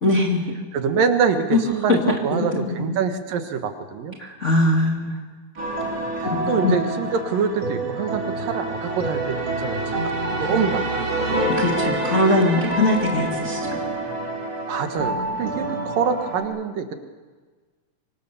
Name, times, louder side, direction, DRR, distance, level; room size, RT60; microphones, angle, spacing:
voice 1, 0.0-0.5 1.5-1.6 1.9-2.0 2.3-2.9 4.2-5.2 6.3-6.8 11.4-13.6, left 2 dB, 25° left, 0 dB, 2.1 m, -21 dB
voice 2, 0.7-4.2 6.2-10.1 10.4-11.5 14.7-16.9, right 6 dB, 70° right, 7 dB, 3.2 m, -25 dB
sound 1, 5.6-16.4, right 2 dB, 40° right, 5.0 m, -27 dB
25.5 x 24.0 x 7.0 m, 1.4 s
omnidirectional pair, 4.1 m